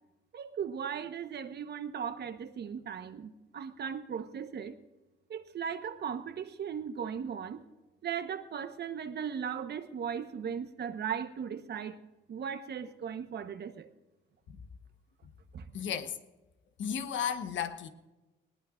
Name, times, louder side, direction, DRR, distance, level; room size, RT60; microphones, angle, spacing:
voice 1, 0.3-4.8 5.3-7.6 8.0-12.0 12.3-13.9 15.5-15.7, right 7 dB, 55° right, 1.2 m, -37 dB
voice 2, 15.7-16.2 16.8-17.9, left 8 dB, 70° left, 1.2 m, -34 dB
20.0 x 18.5 x 2.6 m
cardioid pair, 90°, 20 cm